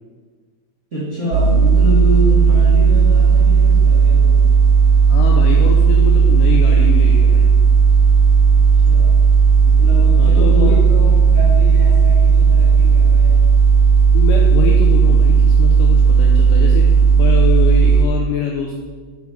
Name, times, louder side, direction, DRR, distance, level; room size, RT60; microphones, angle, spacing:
voice 1, 0.9-4.5 8.5-9.2 9.6-13.4, left 1 dB, 55° right, -10 dB, 0.7 m, -27 dB
sound 1, 1.3-18.1, right 5 dB, 80° right, 2.0 m, -12 dB
voice 2, 5.1-7.5 10.2-10.8 14.1-16.9 17.2-18.8, left 6 dB, 90° left, 1 dB, 1.9 m, -24 dB
7.1 x 5.9 x 4.7 m, 1.5 s
omnidirectional pair, 4.5 m